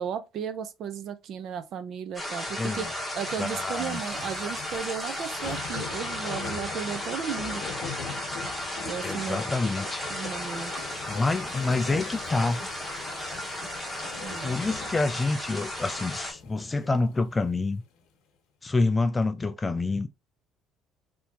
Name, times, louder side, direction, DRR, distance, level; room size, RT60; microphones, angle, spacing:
voice 1, 0.0-2.9 3.1-7.6 8.9-9.4 10.1-10.7 14.2-14.6, right 8 dB, 50° right, 0.5 m, -35 dB
sound 1, 2.1-16.3, left 1 dB, ahead, 1.0 m, -35 dB
sound 2, 3.1-17.6 18.0-18.1, left 6 dB, 75° left, 1.0 m, -42 dB
voice 2, 3.4-4.0 9.0-10.0 11.1-12.6 14.4-17.8 18.6-20.1, left 3 dB, 15° left, 0.3 m, -27 dB
3.4 x 2.7 x 2.8 m
cardioid pair, 150°, 0 cm